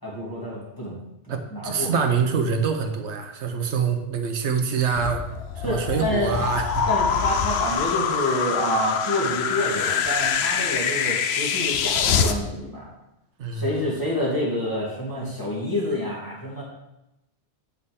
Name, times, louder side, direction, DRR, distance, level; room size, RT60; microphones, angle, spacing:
voice 1, 0.0-1.0 1.5-1.9 5.6-6.4 6.9-12.9 13.5-16.6, equal, 15° left, -6 dB, 2.7 m, -28 dB
voice 2, 1.3-5.2 5.6-6.8 13.4-13.7, right 6 dB, 75° right, 6 dB, 1.1 m, -25 dB
sound 1, 4.9-12.3, left 7 dB, 65° left, 0.8 m, -25 dB
8.4 x 6.5 x 3.6 m, 0.89 s
omnidirectional pair, 1.2 m